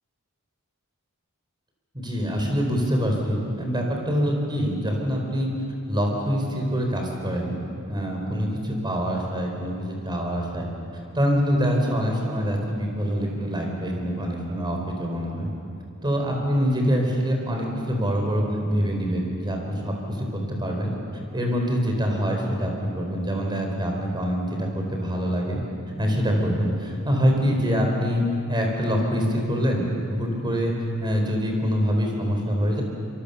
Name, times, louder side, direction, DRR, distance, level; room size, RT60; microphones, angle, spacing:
voice 1, 1.9-5.5 5.9-7.6 7.9-10.7 11.1-15.5 16.0-20.9 21.3-25.6 26.0-30.7 31.0-32.8, equal, 20° right, 1 dB, 4.4 m, -25 dB
26.0 x 23.5 x 7.0 m, 2.6 s
head